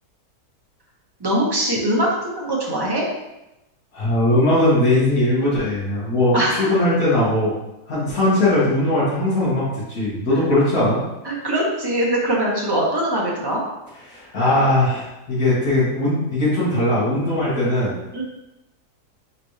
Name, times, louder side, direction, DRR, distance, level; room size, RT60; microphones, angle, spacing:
voice 1, 1.2-3.0 6.3-6.7 11.2-13.6 18.1-18.2, right 1 dB, 40° right, -3 dB, 0.3 m, -22 dB
voice 2, 3.9-7.5 7.9-11.0 14.1-18.0, left 1 dB, 60° left, -10 dB, 2.0 m, -19 dB
4.3 x 4.0 x 3.1 m, 0.95 s
omnidirectional pair, 1.8 m